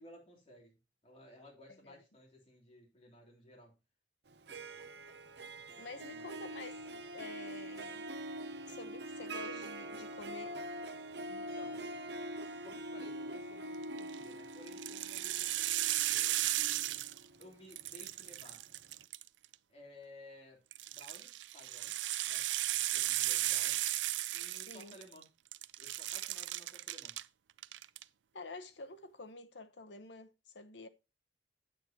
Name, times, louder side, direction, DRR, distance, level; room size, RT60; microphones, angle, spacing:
voice 1, 0.0-3.8 6.1-6.3 11.2-12.0 12.6-17.1 17.4-18.7 19.7-22.0 22.2-23.9 24.3-25.2 25.8-27.2, left 1 dB, 35° left, 3.4 m, -57 dB
Harp, 4.3-18.2, right 1 dB, 60° right, 0.8 m, -44 dB
voice 2, 5.8-6.8 7.1-8.1 8.7-10.6 24.7-25.0 28.3-30.9, left 3 dB, 75° left, 1.0 m, -49 dB
sound 1, 13.8-14.2 14.7-17.4 17.7-19.5 20.7-25.2 25.5-27.2 27.6-28.0, right 15 dB, 80° right, 0.4 m, -35 dB
8.9 x 8.4 x 2.9 m
head